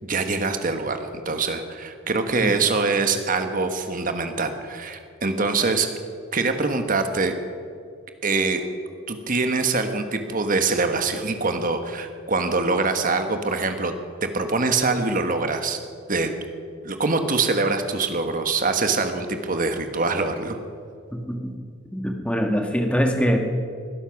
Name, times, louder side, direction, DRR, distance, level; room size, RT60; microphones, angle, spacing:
voice 1, 0.0-5.9 6.3-7.3 8.2-8.6 9.1-13.9 14.2-15.8 16.1-16.3 16.8-20.6, right 3 dB, 40° right, 7 dB, 1.4 m, -24 dB
voice 2, 21.1-21.5 21.9-23.4, equal, 5° left, 4 dB, 1.4 m, -23 dB
20.5 x 11.5 x 6.0 m, 2.3 s
head